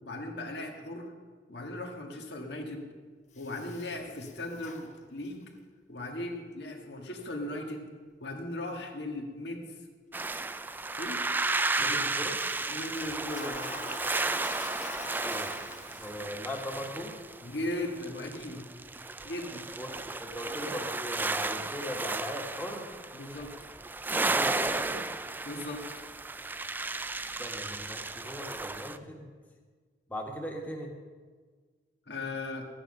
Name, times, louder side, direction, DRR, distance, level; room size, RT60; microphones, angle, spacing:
voice 1, 0.0-1.1 1.5-2.9 3.4-5.4 5.9-7.9 8.2-9.8 11.0-11.2 11.8-12.1 12.7-13.7 17.4-18.6 19.2-19.7 23.1-23.5 25.5-25.9 32.1-32.7, left 1 dB, 75° left, 3 dB, 1.8 m, -37 dB
Toilet flush, 3.3-5.6 12.3-16.5, left 4 dB, 40° left, 1.0 m, -47 dB
sound 1, 10.1-29.0, right 3 dB, 10° right, 0.3 m, -34 dB
voice 2, 11.8-12.4 15.2-15.5 16.0-17.2 19.8-22.9 24.1-25.1 27.4-29.3 30.1-30.9, equal, 10° left, 0 dB, 1.5 m, -39 dB
14.0 x 9.8 x 6.6 m, 1.5 s
head